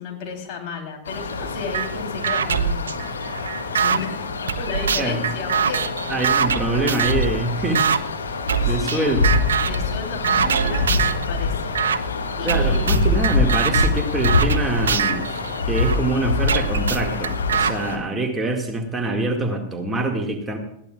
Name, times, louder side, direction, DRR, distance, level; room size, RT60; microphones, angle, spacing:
voice 1, 0.0-3.0 3.7-5.9 8.5-9.2 9.6-13.2, left 4 dB, 45° left, 1 dB, 3.4 m, -33 dB
sound 1, 1.0-18.0, left 3 dB, 75° left, 1.8 m, -25 dB
sound 2, 1.7-1.9 2.2-4.0 4.5-7.3 7.7-8.0 8.5-9.0 9.2-9.8 10.2-11.2 11.7-12.0 12.5-16.0 16.5-17.7, right 7 dB, 70° right, 0.5 m, -23 dB
voice 2, 6.1-7.9 8.6-9.3 12.4-15.4 15.7-20.6, right 2 dB, 15° right, 2 dB, 2.1 m, -25 dB
20.0 x 15.5 x 2.4 m, 0.71 s
figure-of-eight pair, 90°, 0 cm